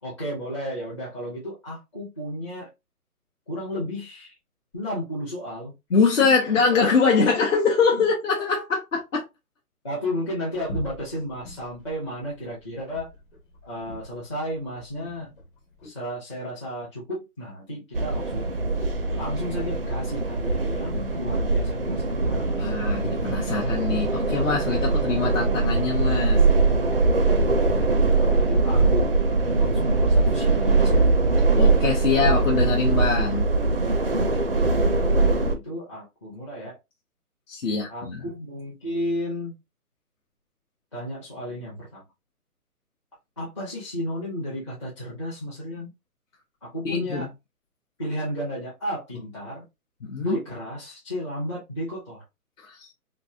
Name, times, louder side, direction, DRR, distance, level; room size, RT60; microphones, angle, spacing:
voice 1, 0.0-2.7 3.5-4.3 4.7-5.7 6.4-6.8 7.9-8.0 9.8-13.1 13.6-15.3 15.8-18.4 19.1-22.7 27.6-31.1 34.4-36.8 37.6-39.6 40.9-42.0 43.4-45.9 46.6-47.3 48.0-49.6 50.2-52.2, equal, 20° left, 0.6 m, -33 dB
voice 2, 5.9-9.2 15.2-15.3 22.6-26.4 31.6-33.5 37.5-38.3 46.8-47.3 50.0-50.4 52.6-52.9, left 4 dB, 60° left, 0.9 m, -23 dB
sound 1, 10.5-15.9, right 2 dB, 35° left, 1.2 m, -42 dB
sound 2, 17.9-35.5, right 3 dB, 40° right, 0.4 m, -22 dB
3.0 x 2.6 x 2.6 m
hypercardioid pair, 155°, 45 cm